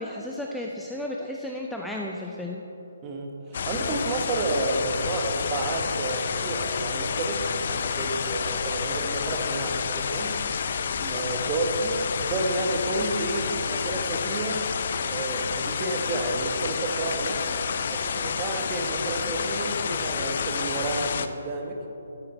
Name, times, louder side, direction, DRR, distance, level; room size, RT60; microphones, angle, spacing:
voice 1, 0.0-2.6, left 1 dB, ahead, -1 dB, 0.6 m, -33 dB
voice 2, 3.0-10.4 11.0-14.7 15.0-17.4 17.9-21.8, right 2 dB, 25° right, 1 dB, 1.4 m, -30 dB
sound 1, 3.5-21.3, left 6 dB, 55° left, 0.5 m, -29 dB
12.5 x 8.7 x 4.5 m, 3.0 s
figure-of-eight pair, 140°, 0 cm